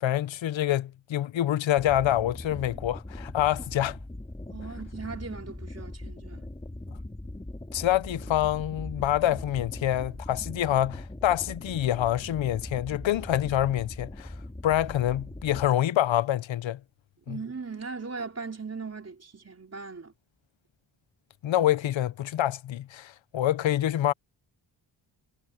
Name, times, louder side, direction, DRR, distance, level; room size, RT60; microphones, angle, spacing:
voice 1, 0.0-4.0 7.7-14.3 14.6-16.8 17.3-17.4 21.4-24.1, left 12 dB, 75° left, 0.7 m, -26 dB
sound 1, 1.8-15.7, left 1 dB, 15° left, 3.8 m, -40 dB
voice 2, 4.5-6.4 17.3-20.1, right 4 dB, 30° right, 4.4 m, -38 dB
wide cardioid pair, 145°, 46 cm